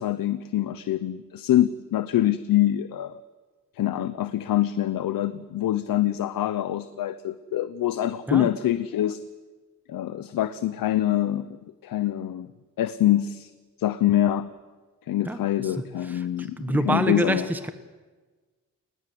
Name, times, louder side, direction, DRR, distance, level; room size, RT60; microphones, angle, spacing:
voice 1, 0.0-3.2 3.7-9.2 9.9-12.5 12.8-13.5 13.8-14.5 15.1-17.5, left 12 dB, 85° left, 13 dB, 1.0 m, -25 dB
voice 2, 15.3-16.3 16.6-17.7, right 1 dB, 5° right, 10 dB, 1.1 m, -27 dB
29.0 x 20.0 x 7.9 m, 1.3 s
wide cardioid pair, 160°, 33 cm